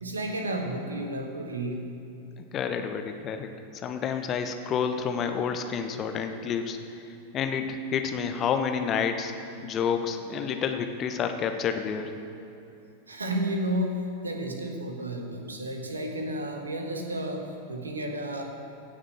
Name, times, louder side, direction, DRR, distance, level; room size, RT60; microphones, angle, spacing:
voice 1, 0.0-1.8 13.1-18.4, right 1 dB, 75° right, 3 dB, 1.6 m, -32 dB
voice 2, 2.5-3.5 3.8-7.0 7.3-9.3 9.6-12.1, left 7 dB, 30° left, 7 dB, 1.0 m, -29 dB
16.0 x 6.5 x 7.7 m, 2.8 s
figure-of-eight pair, 90°, 0 cm